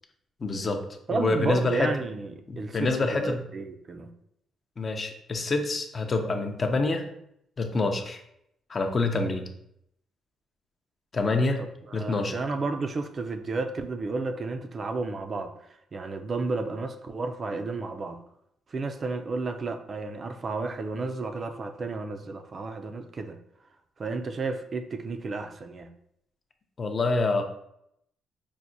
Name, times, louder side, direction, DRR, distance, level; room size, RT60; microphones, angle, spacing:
voice 1, 0.4-0.8 1.1-1.9 2.5-3.4 4.8-7.1 7.6-8.2 8.7-9.5 11.1-11.7 11.9-12.3 26.8-27.4, left 3 dB, 35° left, 5 dB, 0.4 m, -26 dB
voice 2, 1.1-4.1 11.9-15.5 15.9-18.2 18.7-23.4 24.0-25.9, right 3 dB, 40° right, 7 dB, 0.3 m, -32 dB
4.6 x 2.1 x 2.6 m, 0.75 s
cardioid pair, 90°, 0 cm